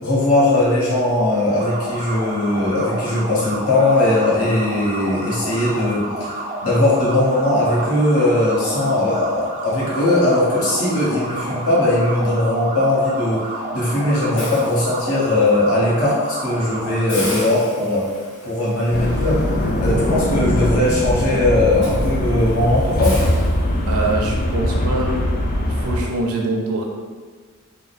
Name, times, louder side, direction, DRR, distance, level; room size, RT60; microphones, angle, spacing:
voice 1, 0.0-18.1 18.4-19.4 19.8-23.2, left 1 dB, 85° left, -6 dB, 1.2 m, -19 dB
sound 1, 1.4-17.0, right 2 dB, 35° right, 0.5 m, -30 dB
Hiss, 14.4-15.5 16.0-16.2 16.5-16.6 17.1-24.2, left 1 dB, 55° left, 1.3 m, -36 dB
sound 2, 18.9-26.1, left 1 dB, 40° left, 0.5 m, -21 dB
voice 2, 23.9-25.2 25.6-26.9, right 2 dB, 85° right, 0 dB, 0.7 m, -24 dB
3.6 x 2.1 x 4.0 m, 1.5 s
head